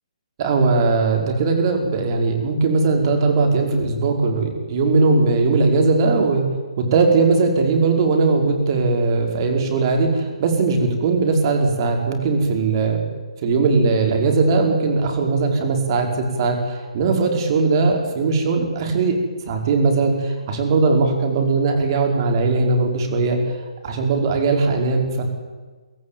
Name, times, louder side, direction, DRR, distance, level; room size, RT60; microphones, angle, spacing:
voice 1, 0.4-6.4 6.8-13.1 13.4-19.2 19.5-23.4 23.8-25.2, right 3 dB, 40° right, 3 dB, 5.2 m, -19 dB
24.0 x 16.0 x 9.2 m, 1.4 s
hypercardioid pair, 145°, 4 cm